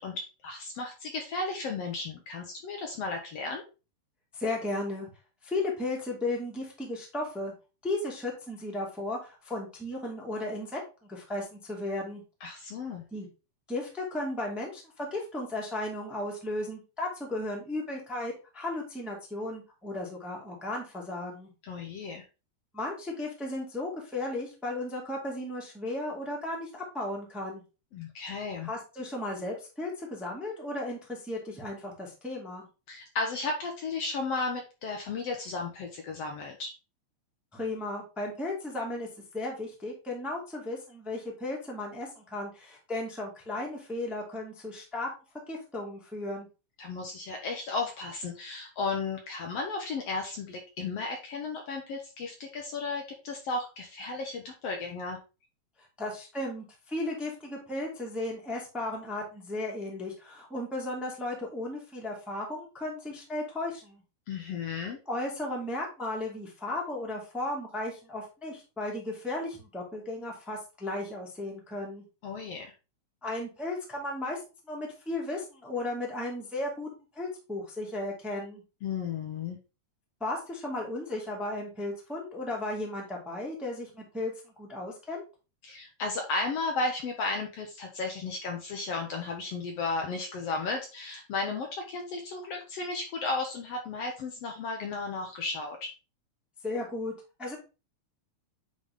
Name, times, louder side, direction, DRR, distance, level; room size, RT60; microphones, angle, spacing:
voice 1, 0.0-3.6 12.4-13.0 21.6-22.2 27.9-28.7 32.9-36.7 46.8-55.2 64.3-65.0 72.2-72.7 78.8-79.6 85.6-95.9, left 3 dB, 65° left, 2 dB, 1.8 m, -34 dB
voice 2, 4.3-5.1 5.4-7.5 7.8-12.2 13.1-13.3 13.7-21.5 22.7-27.6 28.6-32.6 37.5-39.1 39.3-45.1 45.5-46.5 56.0-64.0 65.0-72.0 73.2-74.4 74.7-76.9 77.1-78.6 80.2-84.3 84.6-85.2 96.6-97.1 97.4-97.6, left 2 dB, ahead, -2 dB, 1.4 m, -35 dB
8.6 x 4.0 x 3.6 m, 0.30 s
omnidirectional pair, 3.4 m